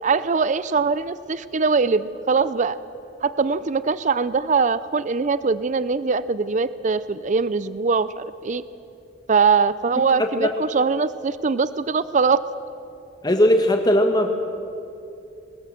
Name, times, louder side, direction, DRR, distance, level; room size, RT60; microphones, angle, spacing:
voice 1, 0.0-2.8 3.2-8.6 9.3-12.4, right 5 dB, 40° right, 16 dB, 0.5 m, -22 dB
voice 2, 13.2-14.3, equal, 20° left, 4 dB, 1.2 m, -18 dB
21.5 x 20.0 x 7.6 m, 2.7 s
head